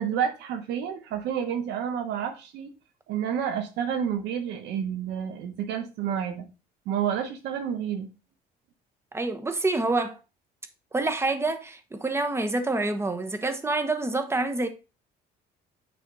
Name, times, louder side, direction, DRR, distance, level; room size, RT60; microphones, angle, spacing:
voice 1, 0.0-2.7 3.1-6.5 6.9-8.1, right 8 dB, 85° right, 1.3 m, -29 dB
voice 2, 9.1-10.2 10.9-14.7, right 2 dB, 15° right, 1.1 m, -27 dB
9.2 x 3.3 x 4.1 m
cardioid pair, 110°, 17 cm